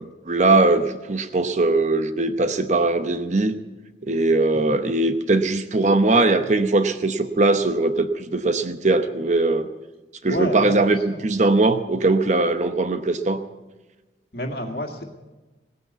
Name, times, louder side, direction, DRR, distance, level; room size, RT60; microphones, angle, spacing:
voice 1, 0.0-3.6 4.0-9.7 10.2-13.4, right 2 dB, 40° right, 9 dB, 0.8 m, -20 dB
voice 2, 10.3-11.3 14.3-15.0, left 1 dB, 55° left, 4 dB, 2.0 m, -30 dB
18.0 x 9.7 x 8.0 m, 1.2 s
head